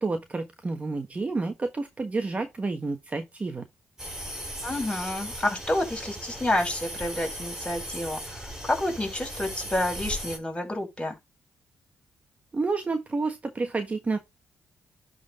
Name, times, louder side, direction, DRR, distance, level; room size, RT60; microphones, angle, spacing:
voice 1, 0.0-3.6 12.5-14.2, right 3 dB, 30° right, 1.3 m, -29 dB
sound 1, 4.0-10.4, equal, 10° right, 4.7 m, -37 dB
voice 2, 4.6-11.1, left 1 dB, 20° left, 5.7 m, -29 dB
11.0 x 4.1 x 3.8 m
cardioid pair, 80°, 5 cm